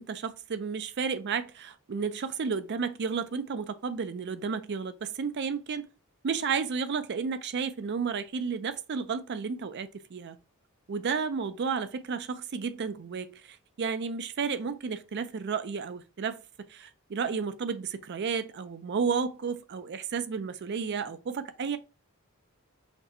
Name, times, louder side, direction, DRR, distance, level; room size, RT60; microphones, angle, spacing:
voice 1, 0.0-5.9 6.2-10.4 10.9-21.8, right 5 dB, 50° right, 0.4 m, -32 dB
5.8 x 2.1 x 2.9 m
head